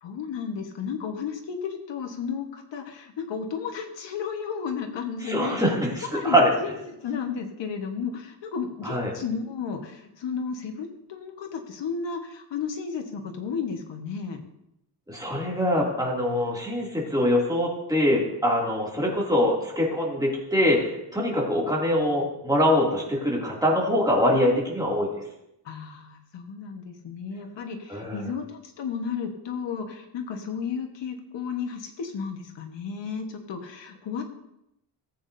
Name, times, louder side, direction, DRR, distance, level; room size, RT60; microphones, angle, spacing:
voice 1, 0.0-5.7 6.1-14.4 25.6-34.2, left 6 dB, 80° left, 4 dB, 1.4 m, -33 dB
voice 2, 5.2-6.5 8.8-9.1 15.1-20.8 21.1-25.1 27.9-28.3, equal, 10° right, -4 dB, 2.6 m, -23 dB
18.0 x 8.4 x 2.7 m, 0.83 s
wide cardioid pair, 160°, 43 cm